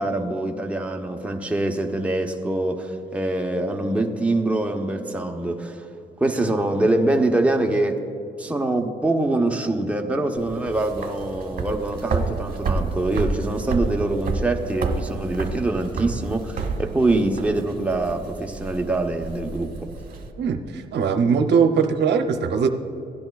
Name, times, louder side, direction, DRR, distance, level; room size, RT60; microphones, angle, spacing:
voice 1, 0.0-5.8 6.2-8.0 8.4-19.9, right 2 dB, 5° right, 2 dB, 0.8 m, -24 dB
sound 1, 10.4-20.3, right 4 dB, 55° right, 1.1 m, -30 dB
voice 2, 20.4-22.7, right 6 dB, 75° right, 6 dB, 0.7 m, -20 dB
16.5 x 10.5 x 2.3 m, 2.7 s
cardioid pair, 90°, 18 cm